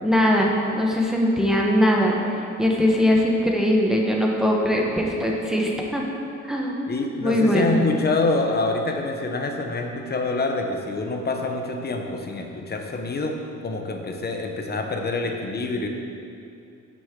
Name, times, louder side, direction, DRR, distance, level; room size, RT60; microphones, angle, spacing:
voice 1, 0.0-6.0 6.5-6.8 7.2-7.8, equal, ahead, -1 dB, 1.0 m, -21 dB
voice 2, 6.9-13.4 13.6-15.9, left 3 dB, 35° left, 3 dB, 0.9 m, -26 dB
9.5 x 6.1 x 3.7 m, 2.6 s
cardioid pair, 90°, 30 cm